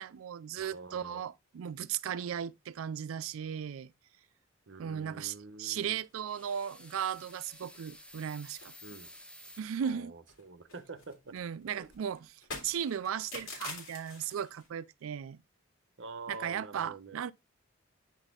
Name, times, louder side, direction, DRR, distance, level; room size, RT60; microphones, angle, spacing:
voice 1, 0.0-3.9 4.8-8.7 9.6-10.1 11.3-12.2 12.6-15.4 16.3-17.3, right 8 dB, 85° right, 0.4 m, -36 dB
voice 2, 0.6-1.2 4.7-6.0 8.8-9.1 9.8-11.3 11.8-11.9 16.0-17.2, right 3 dB, 60° right, 0.8 m, -46 dB
sound 1, 6.0-6.5 6.9-7.0 7.3-7.4 7.7-8.3 8.6-10.0 10.3-14.7, left 3 dB, 85° left, 2.9 m, -47 dB
sound 2, 6.2-9.6, left 1 dB, 5° left, 0.6 m, -53 dB
9.0 x 4.1 x 3.6 m
head